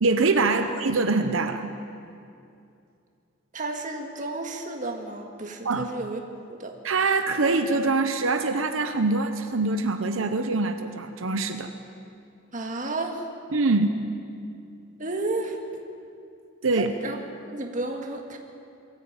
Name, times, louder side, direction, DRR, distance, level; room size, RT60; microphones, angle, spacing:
voice 1, 0.0-1.7 5.6-5.9 6.8-11.7 13.5-13.9 16.6-16.9, right 3 dB, 85° right, 7 dB, 0.9 m, -24 dB
voice 2, 3.5-6.2 6.5-6.7 12.5-13.3 15.0-15.6 16.7-17.2 17.5-18.4, right 2 dB, 40° right, 3 dB, 1.9 m, -32 dB
21.5 x 14.0 x 8.9 m, 2.6 s
head